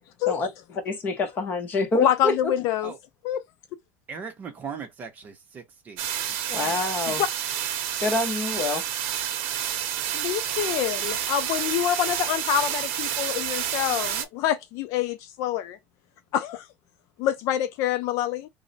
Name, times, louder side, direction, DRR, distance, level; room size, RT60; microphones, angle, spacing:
voice 1, 0.9-2.3 6.5-7.2 8.0-8.8, left 3 dB, 25° left, 0.8 m, -26 dB
voice 2, 1.9-2.9 3.2-3.4 7.2-7.3 10.1-15.8 16.3-16.7 17.2-18.5, left 11 dB, 50° left, 0.4 m, -26 dB
voice 3, 4.1-7.2, right 6 dB, 25° right, 0.7 m, -40 dB
sound 1, 6.0-14.2, right 10 dB, 75° right, 0.7 m, -29 dB
3.0 x 2.0 x 3.9 m
cardioid pair, 170°, 7 cm